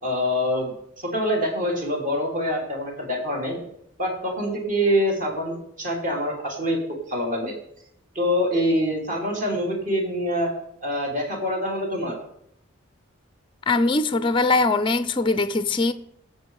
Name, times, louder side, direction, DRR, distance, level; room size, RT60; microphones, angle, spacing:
voice 1, 0.0-3.6 4.0-7.5 8.1-10.5 10.8-12.2, equal, 40° right, 3.2 m, -25 dB
voice 2, 13.7-15.9, left 3 dB, 25° left, 0.5 m, -21 dB
19.0 x 7.1 x 4.8 m
head